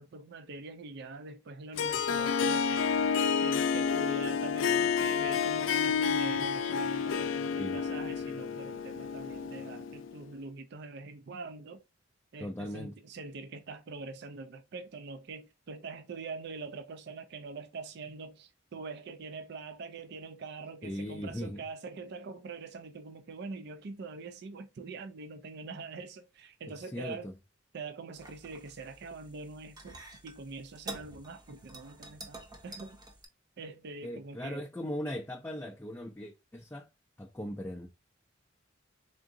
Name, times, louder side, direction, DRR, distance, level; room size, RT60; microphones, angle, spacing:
voice 1, 0.0-2.9 3.4-11.8 12.3-27.3 27.7-33.0 33.6-34.7, right 4 dB, 60° right, 0.4 m, -44 dB
Harp, 1.8-10.2, left 6 dB, 75° left, 0.4 m, -30 dB
voice 2, 12.4-12.9 20.8-21.6 26.7-27.3 34.0-36.9 37.2-37.9, left 1 dB, 10° left, 0.4 m, -39 dB
sound 1, 28.1-33.3, right 2 dB, 20° right, 0.7 m, -48 dB
3.8 x 3.6 x 2.6 m
head